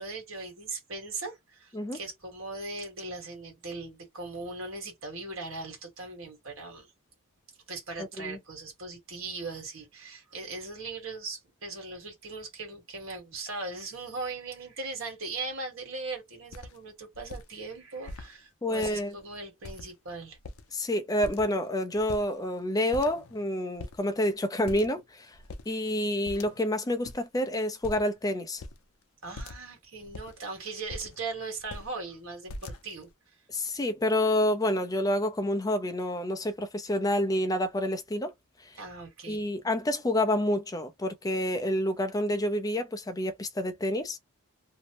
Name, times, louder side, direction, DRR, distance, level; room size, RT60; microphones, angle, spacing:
voice 1, 0.0-6.9 7.7-20.4 29.2-33.1 38.7-39.4, right 3 dB, 60° right, 1.4 m, -39 dB
sound 1, 16.1-16.2 16.5-16.8 17.1-17.4 18.1-18.3 18.7-19.2 19.6-20.1 20.3-20.8 21.2-21.7 21.9-22.6 22.9-23.4 23.8-24.0 24.6-25.0 25.3-25.7 26.2-26.8 27.0-27.2 27.8-28.2 28.6-28.8 29.4-29.7 30.0-31.2 31.6-31.9 32.5-33.1, left 2 dB, 75° left, 0.5 m, -42 dB
voice 2, 18.6-19.1 20.7-25.3 25.7-28.6 33.5-38.3 38.6-38.8 39.3-44.2, left 1 dB, 15° left, 0.4 m, -28 dB
2.7 x 2.0 x 2.9 m
head